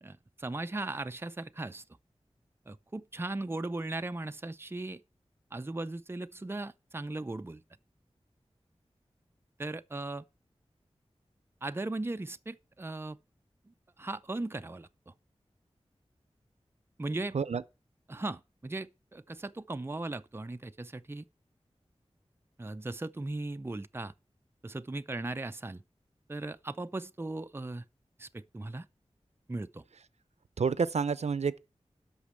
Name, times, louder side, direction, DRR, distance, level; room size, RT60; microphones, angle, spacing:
voice 1, 0.0-1.8 2.7-5.0 5.5-7.6 9.6-10.2 11.6-13.2 13.7-15.1 17.0-17.3 18.1-21.2 22.6-24.1 24.6-25.8 26.3-27.8 28.2-28.9 29.5-29.8, right 2 dB, 20° right, 0.5 m, -38 dB
voice 2, 30.6-31.6, right 5 dB, 85° right, 0.6 m, -29 dB
8.4 x 6.2 x 7.5 m
wide cardioid pair, 70°, 11 cm